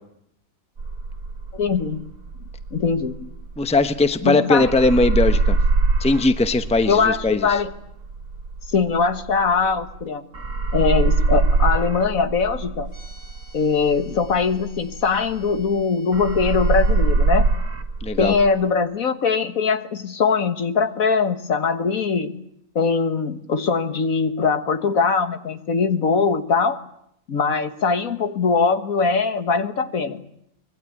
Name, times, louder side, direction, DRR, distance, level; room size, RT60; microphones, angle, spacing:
sound 1, 0.8-4.3 4.6-10.0 10.3-15.8 16.1-18.5, right 3 dB, 65° right, 2.3 m, -23 dB
voice 1, 1.5-2.0 2.7-3.2 4.2-4.7 6.9-7.7 8.7-10.2 10.7-12.9 13.5-17.5 18.2-22.3 22.7-26.8 27.3-30.2, left 5 dB, 75° left, 9 dB, 1.9 m, -21 dB
voice 2, 3.6-5.6 6.0-7.6 18.0-18.3, left 2 dB, 5° left, 9 dB, 0.9 m, -19 dB
sound 2, 12.9-17.0, equal, 60° left, 7.8 m, -51 dB
24.5 x 21.5 x 8.6 m, 0.76 s
omnidirectional pair, 1.5 m